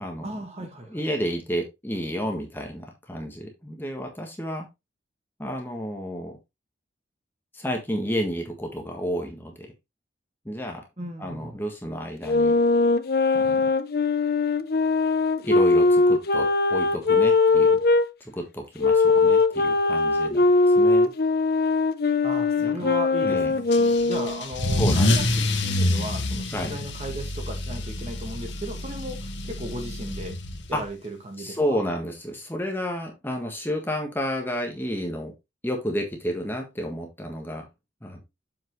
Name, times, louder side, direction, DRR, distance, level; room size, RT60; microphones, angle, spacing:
voice 1, 0.2-1.0 11.0-11.6 22.2-25.2 25.6-30.4 30.7-31.8, right 1 dB, 35° right, 1.7 m, -36 dB
voice 2, 0.8-4.7 5.4-6.4 7.5-9.7 10.4-12.5 13.3-13.7 15.4-17.8 18.2-20.5 20.7-21.1 22.6-22.9 23.2-23.5 24.8-25.2 26.5-26.7 30.7-30.8 31.4-35.3 35.6-37.7 38.0-38.2, equal, 10° left, 1.4 m, -31 dB
sound 1, 12.3-18.1 18.8-24.4, left 3 dB, 55° left, 0.7 m, -21 dB
Car / Engine starting / Accelerating revving vroom, 23.7-30.9, left 1 dB, 75° left, 1.4 m, -27 dB
7.4 x 5.9 x 3.1 m
head